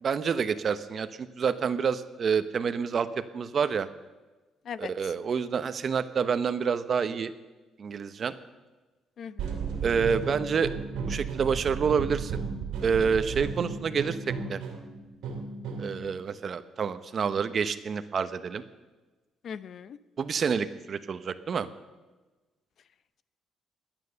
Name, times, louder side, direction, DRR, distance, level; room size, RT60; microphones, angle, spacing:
voice 1, 0.0-3.9 4.8-7.3 7.8-8.3 9.8-10.7 11.1-12.4 12.8-14.6 15.8-18.6 20.2-21.7, right 6 dB, 45° right, 12 dB, 0.9 m, -28 dB
voice 2, 9.2-9.6 19.4-20.0, left 7 dB, 55° left, 15 dB, 0.6 m, -39 dB
sound 1, 9.4-16.0, right 5 dB, 85° right, 2.5 m, -34 dB
21.5 x 9.1 x 6.8 m, 1.2 s
cardioid pair, 115°, 0 cm